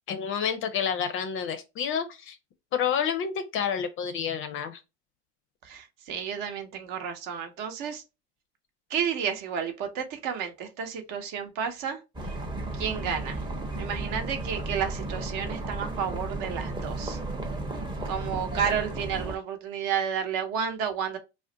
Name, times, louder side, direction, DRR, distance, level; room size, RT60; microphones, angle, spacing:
voice 1, 0.1-2.4 2.7-4.8, left 7 dB, 35° left, 0.5 m, -29 dB
voice 2, 5.6-8.0 8.9-12.3 12.7-13.4 13.8-17.2 18.0-21.2, right 7 dB, 55° right, 0.8 m, -31 dB
sound 1, 12.1-19.4, right 2 dB, 15° right, 0.6 m, -34 dB
2.4 x 2.1 x 3.7 m
hypercardioid pair, 100°, 37 cm